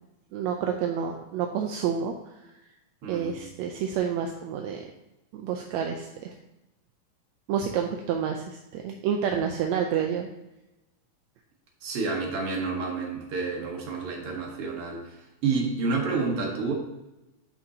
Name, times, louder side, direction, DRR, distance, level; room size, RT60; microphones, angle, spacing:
voice 1, 0.3-2.1 3.1-4.9 5.3-6.3 7.5-10.3, right 8 dB, 75° right, 3 dB, 1.8 m, -29 dB
voice 2, 3.0-3.3 11.8-15.0 15.4-16.7, right 4 dB, 50° right, -1 dB, 2.3 m, -29 dB
11.0 x 5.7 x 2.8 m, 0.96 s
omnidirectional pair, 3.6 m